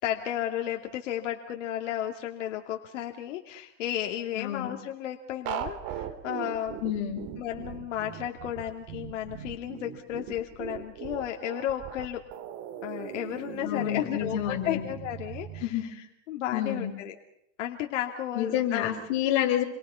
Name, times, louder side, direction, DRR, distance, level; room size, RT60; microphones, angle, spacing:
voice 1, 0.0-6.8 7.4-12.2 12.8-17.2 17.6-18.9, left 11 dB, 85° left, 3 dB, 2.8 m, -33 dB
voice 2, 4.4-4.7 6.8-7.2 13.6-14.8 15.6-15.9 16.5-16.9 18.4-19.6, left 11 dB, 50° left, 1 dB, 7.3 m, -28 dB
sound 1, 5.5-15.7, right 9 dB, 40° right, 3.2 m, -39 dB
30.0 x 23.0 x 5.8 m, 0.81 s
supercardioid pair, 160°, 36 cm